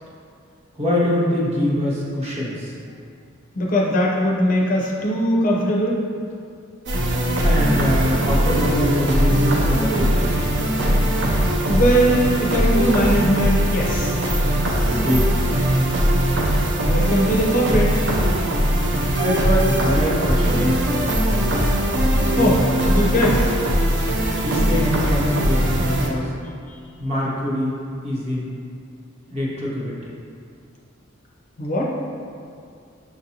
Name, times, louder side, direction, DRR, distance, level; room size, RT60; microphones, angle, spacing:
voice 1, 0.8-2.7 7.4-10.4 10.7-11.0 14.8-15.7 19.1-21.2 24.4-26.3 27.0-27.8 28.0-28.5 29.3-29.9, equal, 30° right, -7 dB, 0.9 m, -23 dB
voice 2, 3.6-6.0 11.7-14.2 16.9-17.9 22.4-23.4 26.7-26.8 31.6-31.9, equal, 40° left, -3 dB, 0.5 m, -20 dB
sound 1, 6.9-26.1, equal, 55° right, 0.5 m, -20 dB
6.1 x 2.6 x 2.8 m, 2.3 s
head